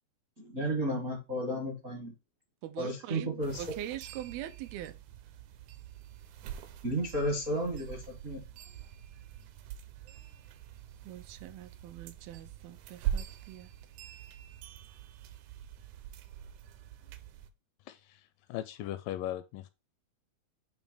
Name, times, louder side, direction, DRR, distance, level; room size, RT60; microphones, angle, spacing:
voice 1, 0.4-2.1 2.8-3.6 6.8-8.4, equal, 60° right, 0.8 m, -33 dB
voice 2, 2.6-5.0 11.1-13.7, right 12 dB, 90° right, 2.6 m, -43 dB
sound 1, 3.4-17.5, right 10 dB, 75° right, 1.9 m, -43 dB
voice 3, 17.9-19.7, left 13 dB, 80° left, 2.0 m, -39 dB
9.0 x 3.1 x 5.1 m
omnidirectional pair, 4.3 m